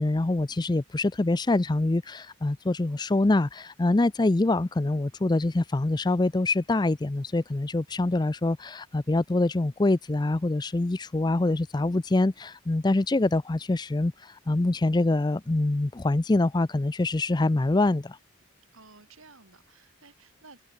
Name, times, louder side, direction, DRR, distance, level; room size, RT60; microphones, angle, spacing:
voice 1, 0.0-18.2, left 2 dB, 20° left, 0.4 m, -25 dB
voice 2, 18.7-20.6, right 3 dB, 70° right, 4.9 m, -53 dB
head